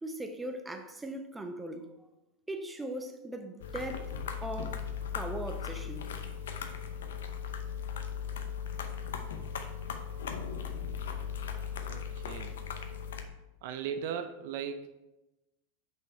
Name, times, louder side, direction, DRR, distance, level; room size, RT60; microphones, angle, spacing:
voice 1, 0.0-1.9 2.5-6.1, right 1 dB, 10° right, 0.8 m, -39 dB
sound 1, 3.6-13.2, left 7 dB, 70° left, 0.7 m, -38 dB
voice 2, 11.8-12.5 13.6-15.0, right 7 dB, 60° right, 0.5 m, -38 dB
6.3 x 5.5 x 4.4 m
hypercardioid pair, 90°, 0 cm